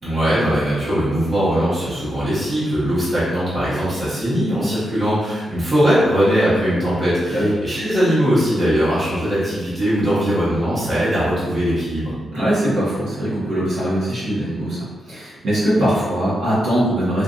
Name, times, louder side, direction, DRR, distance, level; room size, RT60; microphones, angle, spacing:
voice 1, 0.0-12.1, equal, 30° right, -11 dB, 1.2 m, -20 dB
voice 2, 12.3-17.2, right 1 dB, 85° right, -10 dB, 1.3 m, -21 dB
3.1 x 2.5 x 2.6 m, 1.3 s
wide cardioid pair, 170°, 0 cm